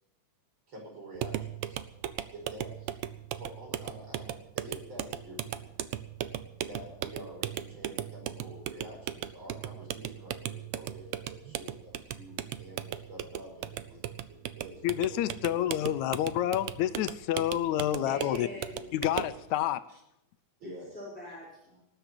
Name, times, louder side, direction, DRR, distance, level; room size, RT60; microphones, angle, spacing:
voice 1, 0.7-1.8 2.3-3.0 3.3-5.7 6.6-15.7 17.8-18.1 19.9-20.0 20.6-20.9, right 1 dB, 40° right, -1 dB, 5.9 m, -48 dB
sound 1, 1.2-19.4, right 12 dB, 80° right, 1.3 m, -38 dB
voice 2, 14.8-18.5 18.9-19.8, left 12 dB, 80° left, 13 dB, 2.0 m, -29 dB
voice 3, 18.0-18.9 20.6-21.8, left 2 dB, 5° left, -8 dB, 5.2 m, -43 dB
19.0 x 8.0 x 8.5 m, 0.81 s
omnidirectional pair, 3.4 m